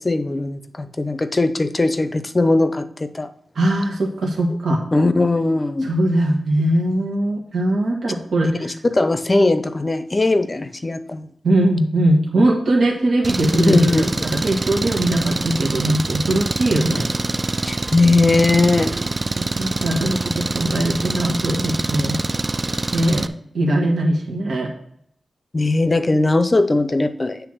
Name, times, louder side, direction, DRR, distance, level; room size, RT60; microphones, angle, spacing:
voice 1, 0.0-3.3 4.9-5.9 8.4-11.3 13.7-14.1 17.7-19.0 25.5-27.4, left 2 dB, 25° left, 11 dB, 0.6 m, -19 dB
voice 2, 3.5-4.8 5.8-8.7 11.4-17.1 19.4-22.2 22.9-23.3 23.5-24.7, right 1 dB, 85° right, -1 dB, 1.4 m, -20 dB
Engine, 13.2-23.3, right 3 dB, 30° right, 0.3 m, -25 dB
9.1 x 3.5 x 6.1 m, 0.69 s
wide cardioid pair, 130°, 0 cm